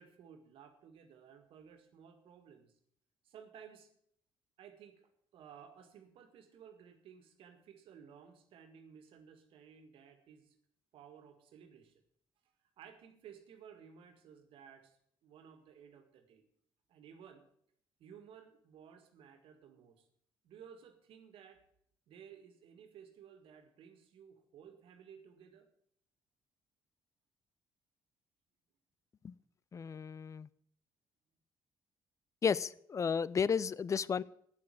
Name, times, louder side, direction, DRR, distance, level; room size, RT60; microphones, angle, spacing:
voice 1, 0.0-2.8 3.2-3.9 4.6-10.6 10.9-12.0 12.8-15.0 15.2-16.5 16.9-17.5 18.0-20.1 20.4-21.6 22.1-25.7, right 7 dB, 75° right, 7 dB, 1.8 m, -56 dB
voice 2, 29.7-30.5 32.4-34.2, left 6 dB, 35° left, 21 dB, 0.5 m, -33 dB
9.0 x 7.6 x 8.6 m, 0.66 s
cardioid pair, 80°, 9 cm